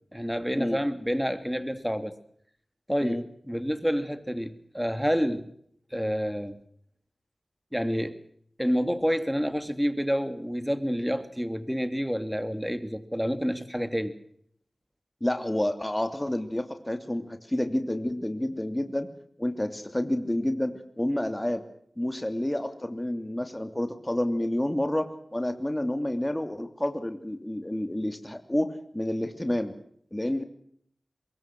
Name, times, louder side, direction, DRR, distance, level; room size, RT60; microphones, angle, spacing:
voice 1, 0.1-2.1 2.9-5.5 5.9-6.6 7.7-8.2 8.6-14.1, equal, ahead, 11 dB, 3.0 m, -28 dB
voice 2, 15.2-19.1 19.4-21.6 22.0-29.7 30.1-30.4, left 1 dB, 15° left, 8 dB, 2.9 m, -29 dB
23.5 x 22.5 x 6.2 m, 0.66 s
cardioid pair, 40°, 0 cm